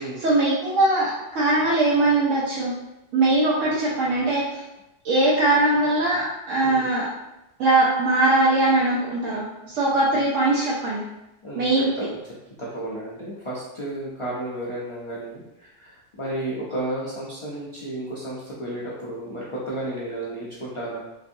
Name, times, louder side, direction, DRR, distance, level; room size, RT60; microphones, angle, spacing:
voice 1, 0.0-2.7 3.1-4.6 5.0-7.1 7.6-11.0 11.5-12.1, right 2 dB, 90° right, -6 dB, 1.0 m, -21 dB
voice 2, 11.4-12.3 12.6-21.0, right 1 dB, 50° left, -7 dB, 0.4 m, -33 dB
3.0 x 2.6 x 2.6 m, 0.93 s
omnidirectional pair, 1.3 m